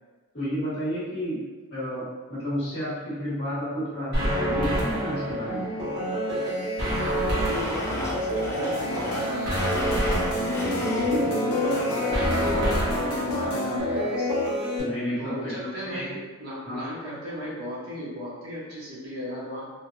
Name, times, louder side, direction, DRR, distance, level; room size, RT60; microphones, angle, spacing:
voice 1, 0.3-1.4 1.7-5.7 14.8-16.1 16.6-16.8, equal, 50° left, -10 dB, 1.3 m, -31 dB
sound 1, 4.1-14.8, equal, 50° right, 1.0 m, -27 dB
voice 2, 7.0-10.2 10.9-14.3 15.2-19.7, equal, 80° right, -9 dB, 1.1 m, -35 dB
Domestic sounds home sounds, 7.5-11.3 11.6-12.6, left 1 dB, 10° left, 0.4 m, -36 dB
sound 2, 8.7-13.8, left 1 dB, 90° left, 0.5 m, -32 dB
3.3 x 2.0 x 2.4 m, 1.3 s
head